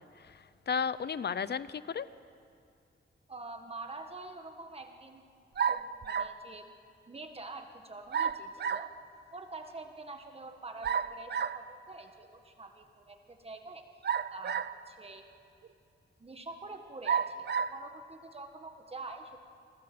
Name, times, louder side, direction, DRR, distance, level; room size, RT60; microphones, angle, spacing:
voice 1, 0.0-2.1, left 6 dB, 60° left, 16 dB, 0.7 m, -34 dB
voice 2, 3.3-5.2 5.6-6.7 7.1-8.9 9.3-13.8 14.3-15.2 16.2-19.4, right 3 dB, 30° right, 5 dB, 1.6 m, -46 dB
sound 1, 5.6-6.4 8.1-8.9 10.8-11.6 14.0-14.9 15.6-15.7 17.0-17.8, right 7 dB, 60° right, 0.8 m, -31 dB
28.0 x 24.5 x 7.8 m, 2.4 s
wide cardioid pair, 155°, 20 cm